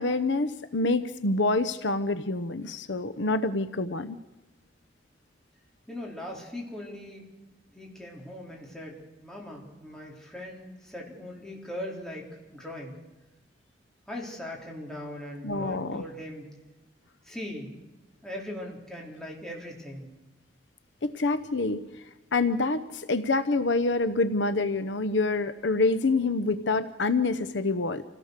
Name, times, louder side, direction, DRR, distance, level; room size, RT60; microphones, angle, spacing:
voice 1, 0.0-4.2 15.4-16.0 21.0-21.8 22.3-28.0, left 3 dB, 75° left, 12 dB, 0.9 m, -26 dB
voice 2, 5.9-7.2 7.7-13.0 14.1-16.5 17.2-17.7 18.2-20.1, left 1 dB, 5° left, -2 dB, 4.1 m, -40 dB
27.5 x 17.0 x 6.6 m, 1.1 s
head